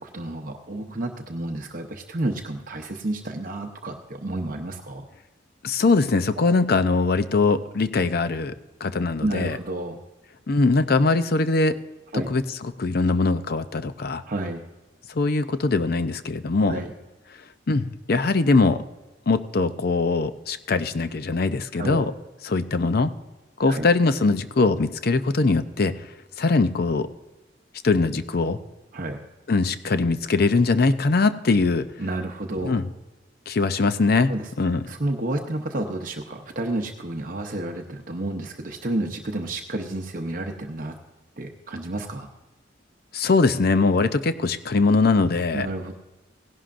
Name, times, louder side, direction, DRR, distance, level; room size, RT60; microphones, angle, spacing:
voice 1, 0.0-5.1 6.4-6.5 9.2-10.0 12.1-12.3 14.3-14.6 16.6-16.9 21.7-22.0 23.7-23.9 28.9-29.2 32.0-32.8 34.3-34.5 34.9-41.0 41.4-42.3 45.5-46.0, right 2 dB, 45° right, 3 dB, 0.8 m, -30 dB
voice 2, 5.6-8.5 8.8-9.6 10.5-11.8 12.3-12.4 12.8-14.2 15.1-16.8 17.7-18.8 19.3-22.1 22.4-23.1 23.6-25.9 26.4-27.1 27.8-28.6 29.5-31.8 32.6-32.9 33.5-34.3 34.6-34.8 43.1-45.7, left 3 dB, 50° left, 11 dB, 0.6 m, -21 dB
17.0 x 11.0 x 2.5 m, 1.1 s
head